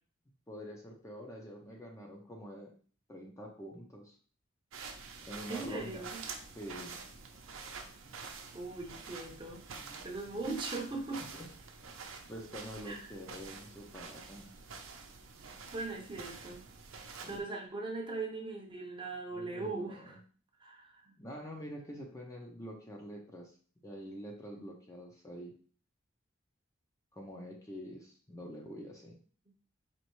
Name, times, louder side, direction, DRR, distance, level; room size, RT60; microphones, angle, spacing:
voice 1, 0.5-2.7 3.1-4.2 5.2-6.1 6.4-7.0 11.3-11.5 11.9-14.5 17.2-17.4 19.3-20.2 21.2-23.5 23.8-25.5 27.1-29.2, equal, 15° left, 0 dB, 0.5 m, -46 dB
sound 1, 4.7-17.4, right 5 dB, 75° right, 0.7 m, -47 dB
voice 2, 5.5-6.2 8.5-11.2 12.9-13.0 15.7-16.6 17.3-20.2 20.6-21.1 24.5-24.6, right 3 dB, 25° right, 0 dB, 0.7 m, -40 dB
4.4 x 3.0 x 3.1 m, 0.42 s
head